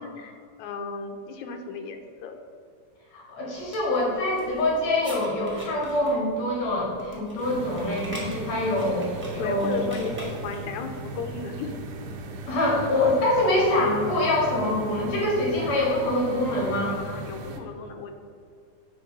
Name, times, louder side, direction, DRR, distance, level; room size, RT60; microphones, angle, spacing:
voice 1, 0.0-2.4 9.4-11.7 16.9-18.1, left 4 dB, 80° left, 5 dB, 1.9 m, -35 dB
voice 2, 3.1-9.8 12.5-16.9, left 1 dB, 60° left, -3 dB, 2.8 m, -25 dB
sound 1, 3.5-10.7, equal, 5° right, 1.1 m, -43 dB
sound 2, 7.4-17.6, right 2 dB, 80° right, 1.3 m, -37 dB
8.4 x 3.9 x 6.0 m, 2.2 s
omnidirectional pair, 3.7 m